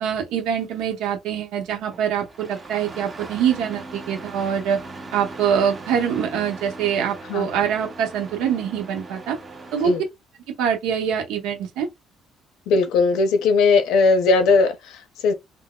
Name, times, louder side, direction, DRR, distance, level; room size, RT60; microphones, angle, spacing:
voice 1, 0.0-4.8 5.1-9.4 9.7-9.9 10.5-11.9, right 8 dB, 90° right, 0.8 m, -24 dB
Engine starting, 1.9-10.0, right 2 dB, 20° right, 0.7 m, -39 dB
voice 2, 12.7-15.3, left 4 dB, 80° left, 0.6 m, -18 dB
3.9 x 2.1 x 2.3 m
cardioid pair, 135°, 0 cm